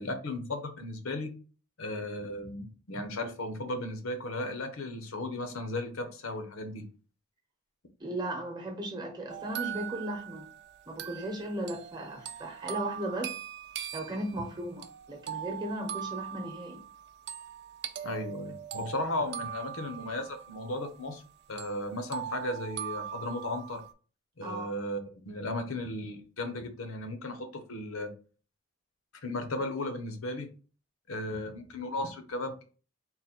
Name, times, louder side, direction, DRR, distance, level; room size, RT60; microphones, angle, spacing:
voice 1, 0.0-1.3 1.8-6.8 18.0-21.2 21.5-23.8 24.4-28.1 29.2-30.5 31.1-32.6, left 1 dB, 80° left, 0.8 m, -35 dB
voice 2, 8.0-10.5 10.9-13.3 13.9-16.8 24.4-24.7, right 1 dB, 20° right, 0.9 m, -36 dB
sound 1, 9.3-21.3 21.6-23.9, right 10 dB, 50° right, 0.3 m, -41 dB
3.9 x 2.2 x 4.2 m
head